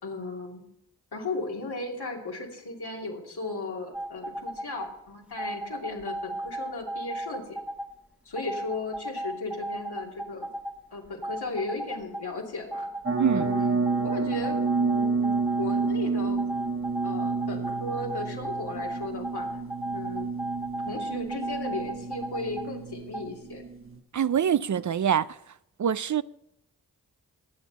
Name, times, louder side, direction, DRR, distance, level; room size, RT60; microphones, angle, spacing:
voice 1, 0.0-0.6 1.1-7.6 8.2-10.5 10.9-12.9 13.3-16.4 17.0-19.5 19.9-20.3 20.9-23.6, left 3 dB, 85° left, 2.9 m, -36 dB
sound 1, 3.9-4.9 5.4-7.9 8.4-10.7 11.1-12.2 12.7-15.9 16.4-22.7 23.1-23.2, right 1 dB, 5° right, 1.2 m, -34 dB
sound 2, 13.0-24.0, right 4 dB, 35° right, 1.3 m, -30 dB
voice 2, 13.2-13.5 24.1-25.3 25.8-26.2, right 8 dB, 50° right, 0.4 m, -24 dB
19.0 x 8.1 x 4.1 m
cardioid pair, 40°, 38 cm